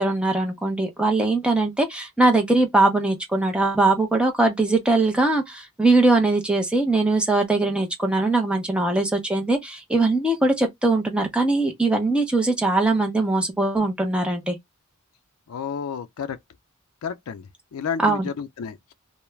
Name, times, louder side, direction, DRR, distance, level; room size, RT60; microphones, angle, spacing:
voice 1, 0.0-14.6 18.0-18.3, right 2 dB, 5° right, 0.6 m, -21 dB
voice 2, 15.5-16.4 17.0-18.9, left 6 dB, 75° left, 0.4 m, -31 dB
2.3 x 2.0 x 3.1 m
head